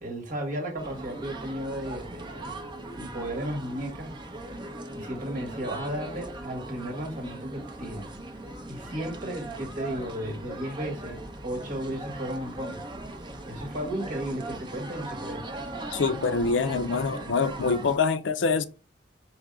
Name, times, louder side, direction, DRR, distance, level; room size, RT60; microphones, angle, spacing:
voice 1, 0.0-2.6 3.0-4.1 4.9-8.1 8.7-12.8 13.4-15.4, equal, 45° right, 1.5 m, -34 dB
sound 1, 0.8-18.0, right 2 dB, 25° right, 0.7 m, -39 dB
voice 2, 15.9-18.6, left 4 dB, 80° left, 0.5 m, -25 dB
4.9 x 2.7 x 3.7 m
head